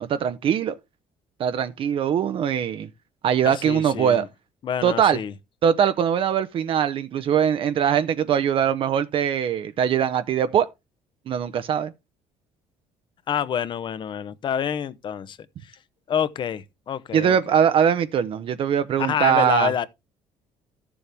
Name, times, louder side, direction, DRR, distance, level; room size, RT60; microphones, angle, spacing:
voice 1, 0.0-0.7 1.4-2.9 3.2-4.3 4.8-5.2 5.6-10.7 11.3-11.9 17.1-19.7, right 8 dB, 50° right, 0.7 m, -21 dB
voice 2, 3.5-4.3 4.6-5.3 13.3-15.4 16.1-17.4 19.0-19.9, left 8 dB, 45° left, 0.8 m, -27 dB
13.5 x 7.0 x 3.4 m
cardioid pair, 130°, 12 cm